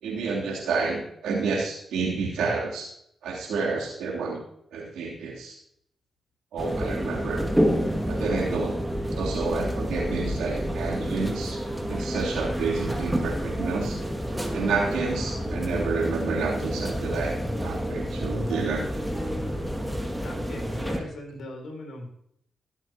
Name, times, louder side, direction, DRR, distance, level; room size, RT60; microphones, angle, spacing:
voice 1, 0.0-2.9 3.2-4.4 4.7-5.5 6.5-7.5 8.0-8.8 9.1-11.6 11.9-13.9 14.5-18.9, right 4 dB, 85° right, -3 dB, 3.1 m, -29 dB
sound 1, 6.6-21.0, equal, 10° right, 2.1 m, -29 dB
voice 2, 20.2-22.1, left 1 dB, 70° left, 2 dB, 3.8 m, -39 dB
17.0 x 8.3 x 2.9 m, 0.71 s
supercardioid pair, 55°, 0 cm